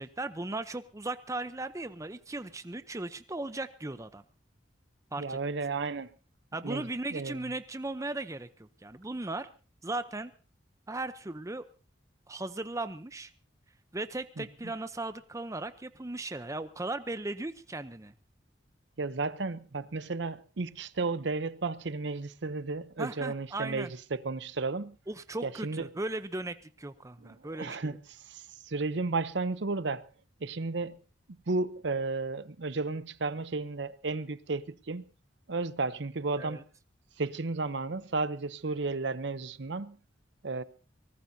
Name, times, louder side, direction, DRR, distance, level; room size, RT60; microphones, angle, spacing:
voice 1, 0.0-4.2 5.1-5.4 6.5-9.5 9.8-10.3 10.9-11.6 12.3-13.3 13.9-18.1 23.0-23.9 25.1-28.0 36.4-36.6, right 2 dB, 15° right, 0.7 m, -37 dB
voice 2, 5.2-6.1 6.6-7.4 14.4-14.5 19.0-24.9 25.4-25.9 27.2-28.0 28.3-30.0 30.4-31.0 31.5-35.1 35.5-36.6 37.2-40.0 40.4-40.6, right 3 dB, 65° right, 0.8 m, -33 dB
24.0 x 19.0 x 2.8 m
head